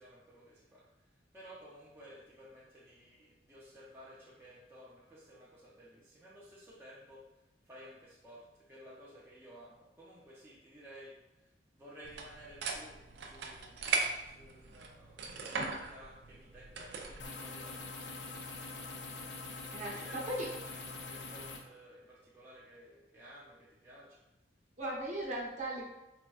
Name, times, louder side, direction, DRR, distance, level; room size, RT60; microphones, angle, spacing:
voice 1, 0.0-7.3 7.6-18.9 19.6-24.3, equal, 15° right, -7 dB, 0.5 m, -55 dB
handling pens, 12.0-17.3, right 4 dB, 70° right, 0.4 m, -39 dB
sound 1, 17.2-21.6, left 3 dB, 70° left, 0.5 m, -44 dB
voice 2, 19.7-20.5 24.8-25.8, right 1 dB, 45° right, -3 dB, 0.8 m, -37 dB
4.3 x 2.6 x 2.3 m, 0.94 s
head